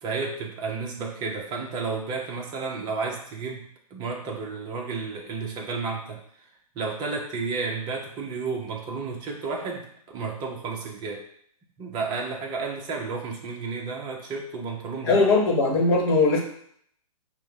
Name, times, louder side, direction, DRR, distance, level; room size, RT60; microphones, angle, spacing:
voice 1, 0.0-6.2 6.7-11.2 11.8-15.3, right 4 dB, 20° right, 0 dB, 0.8 m, -32 dB
voice 2, 15.0-16.4, left 3 dB, 40° left, 0 dB, 1.2 m, -20 dB
6.1 x 2.2 x 3.5 m, 0.65 s
hypercardioid pair, 135°, 19 cm